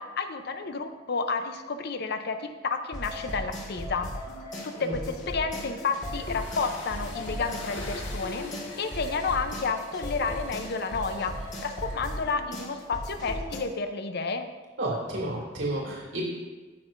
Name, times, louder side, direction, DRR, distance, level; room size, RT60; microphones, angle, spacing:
voice 1, 0.0-4.1 4.6-8.5 8.8-11.4 11.6-14.5, left 4 dB, 60° left, 8 dB, 0.6 m, -31 dB
sound 1, 2.9-13.6, equal, 40° left, 1.7 m, -37 dB
sound 2, 5.9-12.2, left 2 dB, 85° left, 1.7 m, -45 dB
voice 2, 14.8-16.2, right 1 dB, 80° right, -3 dB, 2.4 m, -31 dB
17.0 x 6.2 x 2.6 m, 1.3 s
head